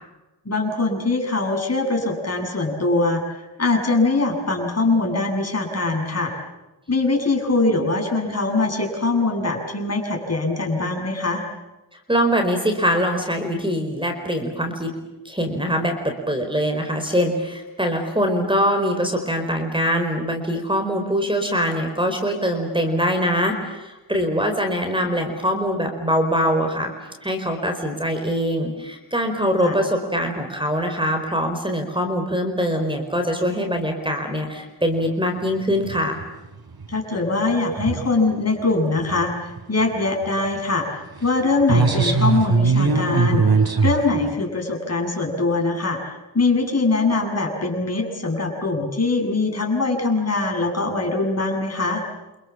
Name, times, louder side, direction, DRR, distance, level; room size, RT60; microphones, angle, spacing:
voice 1, 0.4-6.3 6.9-11.4 29.6-29.8 36.9-43.4 43.8-52.0, left 3 dB, 35° left, 3 dB, 7.8 m, -22 dB
voice 2, 12.1-14.9 15.2-26.9 27.2-36.2, equal, 10° right, 4 dB, 4.5 m, -23 dB
sound 1, 35.7-36.2 36.6-36.9 37.5-38.1 39.0-39.3 39.6-39.7 39.9-40.0 40.2-40.6 41.2-41.3 41.6-44.3, right 4 dB, 60° right, 4.4 m, -20 dB
29.5 x 27.0 x 7.4 m, 1.0 s
wide cardioid pair, 110°, 43 cm